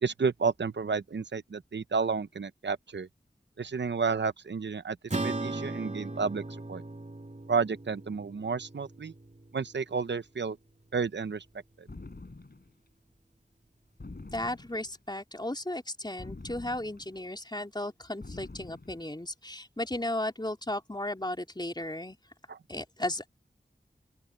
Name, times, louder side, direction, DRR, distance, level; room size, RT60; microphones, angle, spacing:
voice 1, 0.0-3.1 3.6-6.4 6.7-6.8 7.5-9.1 9.5-10.6 10.9-11.4 11.8-11.9 22.5-22.6, right 5 dB, 85° right, 0.7 m, -31 dB
Acoustic guitar / Strum, 5.1-9.8, right 2 dB, 40° right, 3.1 m, -37 dB
sound 1, 11.9-12.8 14.0-15.0 16.2-17.2 18.2-19.1, left 2 dB, 60° left, 7.3 m, -46 dB
voice 2, 14.3-22.2 22.7-23.3, left 1 dB, 25° left, 3.7 m, -35 dB
open air
wide cardioid pair, 45°, 18 cm